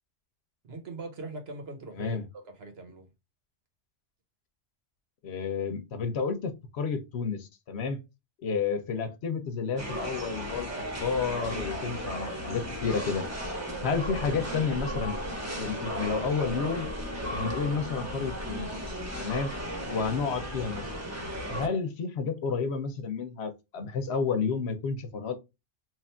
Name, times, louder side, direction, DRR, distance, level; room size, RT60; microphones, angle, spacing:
voice 1, 0.6-3.1 19.8-20.1, right 3 dB, 65° right, 1.2 m, -42 dB
voice 2, 5.2-8.0 8.4-10.7 11.0-13.2 13.8-15.2 15.6-16.9 17.3-18.9 19.2-19.5 19.9-20.9 21.5-25.4, left 5 dB, 70° left, 1.0 m, -31 dB
sound 1, 9.8-21.7, equal, 15° right, 0.9 m, -35 dB
3.1 x 2.5 x 4.3 m
omnidirectional pair, 1.2 m